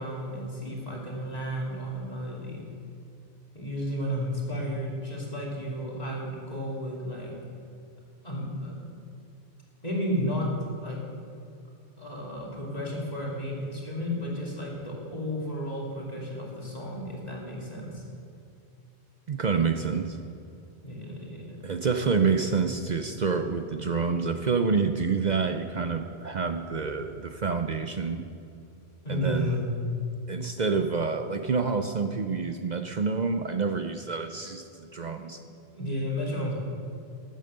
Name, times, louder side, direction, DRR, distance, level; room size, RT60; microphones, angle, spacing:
voice 1, 0.0-2.6 3.5-7.3 8.2-8.9 9.8-10.5 10.8-11.0 12.0-18.0 20.8-21.6 29.0-29.7 35.0-35.2 35.7-36.5, equal, 35° left, -3 dB, 3.1 m, -33 dB
voice 2, 19.3-20.2 21.6-28.3 29.1-29.6 30.3-35.4, right 5 dB, 50° right, 7 dB, 0.7 m, -28 dB
15.0 x 8.9 x 6.6 m, 2.6 s
omnidirectional pair, 1.1 m